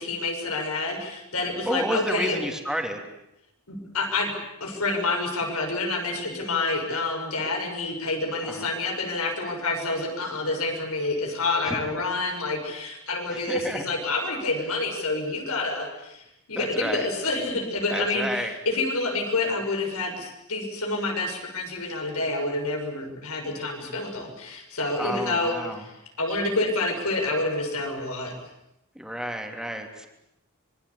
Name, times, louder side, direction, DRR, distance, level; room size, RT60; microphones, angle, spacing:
voice 1, 0.0-2.4 3.7-4.3 4.6-16.2 16.5-25.9 26.2-28.3, left 2 dB, 85° left, 3 dB, 6.7 m, -28 dB
voice 2, 1.6-3.0 8.4-8.7 11.6-11.8 12.2-12.3 13.3-13.8 16.5-17.1 17.9-18.5 25.0-25.8 28.9-30.1, equal, 5° right, 3 dB, 3.0 m, -31 dB
25.5 x 22.5 x 8.6 m, 0.82 s
head